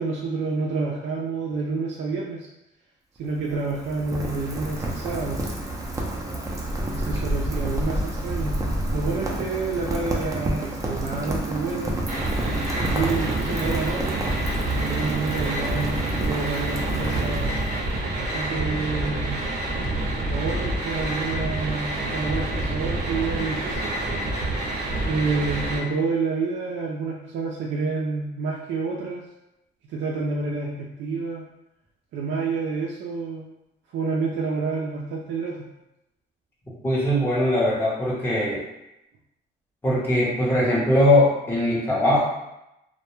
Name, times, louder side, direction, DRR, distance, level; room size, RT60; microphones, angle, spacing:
voice 1, 0.0-2.5 3.2-5.4 6.9-8.6 8.9-12.0 12.9-14.2 14.8-17.5 18.2-19.4 20.3-23.9 25.1-29.2 29.9-31.4 32.1-33.4 33.9-35.7, right 4 dB, 75° right, -3 dB, 0.4 m, -28 dB
Rain, 3.2-18.0, right 1 dB, 15° right, 0.5 m, -29 dB
sound 1, 12.1-25.8, right 1 dB, 50° right, 0.8 m, -27 dB
voice 2, 36.8-38.6 39.8-42.2, left 1 dB, 10° left, -7 dB, 0.8 m, -21 dB
2.2 x 2.1 x 3.0 m, 0.89 s
cardioid pair, 90°, 20 cm